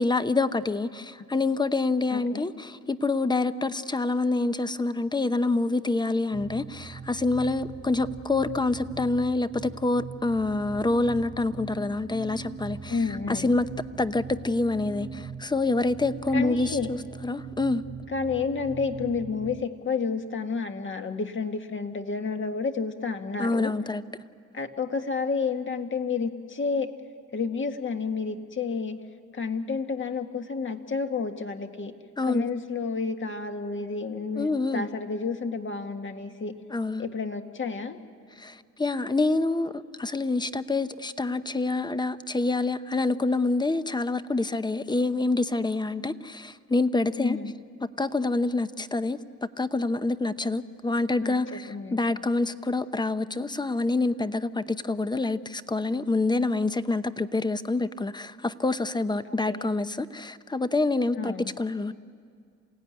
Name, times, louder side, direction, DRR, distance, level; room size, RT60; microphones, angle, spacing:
voice 1, 0.0-13.0 13.3-13.6 14.0-17.8 23.4-24.0 32.2-32.5 34.4-34.9 36.7-37.0 38.4-47.4 48.0-61.9, left 3 dB, 15° left, 0.8 m, -27 dB
voice 2, 2.1-2.4 12.9-13.6 16.3-16.9 18.1-23.7 24.5-26.9 27.3-29.0 29.3-31.9 32.3-36.6 37.0-38.0 47.2-47.5 51.2-52.0 59.3-59.7 61.1-61.5, left 4 dB, 40° left, 1.8 m, -30 dB
sound 1, 6.3-19.7, right 5 dB, 25° right, 0.7 m, -40 dB
27.5 x 16.5 x 9.7 m
cardioid pair, 90°, 30 cm